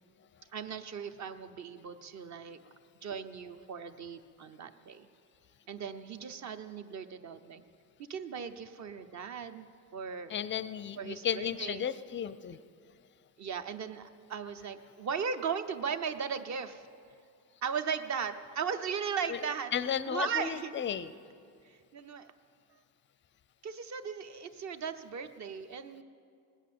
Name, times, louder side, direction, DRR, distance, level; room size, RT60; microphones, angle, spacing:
voice 1, 0.5-2.6 3.0-5.1 5.7-7.6 8.1-9.7 9.9-10.4 11.0-11.9 13.4-16.9 17.6-19.7 20.1-20.7 21.6-22.3 23.6-26.0, right 6 dB, 45° right, 10 dB, 0.8 m, -37 dB
voice 2, 10.3-12.6 19.3-19.4 19.7-21.1, left 8 dB, 30° left, 15 dB, 0.4 m, -34 dB
19.0 x 8.3 x 7.6 m, 2.3 s
cardioid pair, 130°, 39 cm